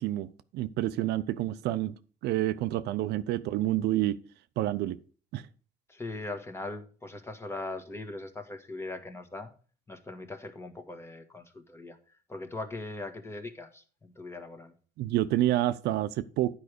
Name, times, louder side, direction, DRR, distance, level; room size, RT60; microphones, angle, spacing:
voice 1, 0.0-1.9 2.2-4.2 4.6-5.0 5.3-5.4 15.0-16.6, right 14 dB, 80° right, 0.6 m, -28 dB
voice 2, 5.9-9.5 9.9-12.0 12.3-14.8, left 2 dB, 15° left, 1.4 m, -40 dB
9.5 x 4.8 x 6.6 m
cardioid pair, 110°, 17 cm